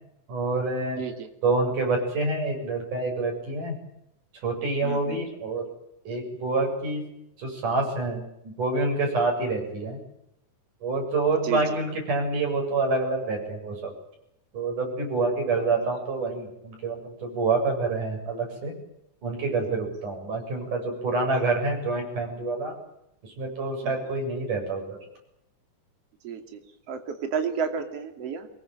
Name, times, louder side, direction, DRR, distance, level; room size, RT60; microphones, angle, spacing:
voice 1, 0.3-1.0 1.4-3.8 4.4-5.6 6.1-7.0 7.4-8.2 8.6-10.0 10.8-13.9 14.5-18.7 19.2-22.8 23.4-25.0, right 3 dB, 85° right, 1 dB, 9.3 m, -27 dB
voice 2, 1.0-1.3 4.8-5.2 11.3-11.8 15.6-15.7 19.5-19.6 21.3-21.4 23.8-23.9 26.2-26.6 26.9-28.5, right 7 dB, 55° right, 6 dB, 3.5 m, -32 dB
23.5 x 22.0 x 9.3 m, 0.81 s
omnidirectional pair, 3.5 m